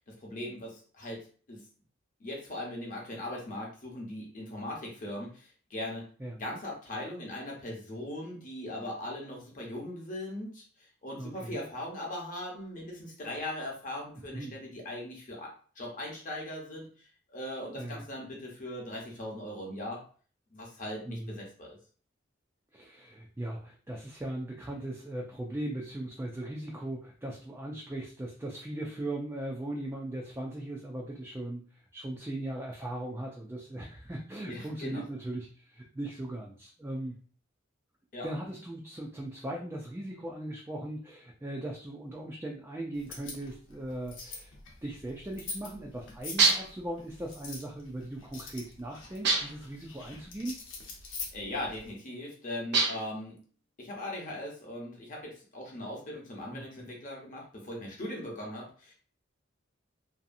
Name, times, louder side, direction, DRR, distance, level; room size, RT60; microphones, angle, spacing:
voice 1, 0.0-1.6 2.2-6.1 6.4-15.5 15.8-20.0 20.5-21.8 34.5-35.0 38.1-38.3 51.3-53.4 53.8-58.9, left 1 dB, 45° left, -1 dB, 0.8 m, -39 dB
voice 2, 11.2-11.6 14.3-14.5 17.8-18.0 21.1-21.4 22.7-31.6 31.9-37.1 38.2-44.5 44.8-50.6 56.5-56.6, right 1 dB, 10° right, -1 dB, 0.4 m, -38 dB
sound 1, 42.9-51.9, left 4 dB, 70° left, 0.8 m, -45 dB
sound 2, 46.4-46.8 49.2-49.7 52.7-53.2, right 4 dB, 60° right, 0.7 m, -26 dB
2.7 x 2.4 x 2.5 m, 0.42 s
head